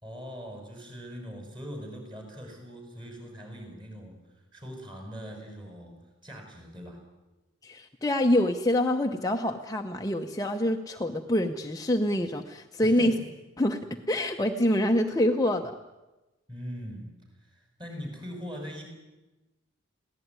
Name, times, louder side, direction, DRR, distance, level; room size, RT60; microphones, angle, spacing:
voice 1, 0.0-4.2 4.5-7.0 12.8-13.3 16.5-17.1 17.4-18.8, equal, 20° right, 3 dB, 6.5 m, -41 dB
voice 2, 7.6-13.1 13.6-15.8, left 1 dB, 15° left, 4 dB, 0.8 m, -26 dB
22.0 x 17.0 x 9.6 m, 1.1 s
head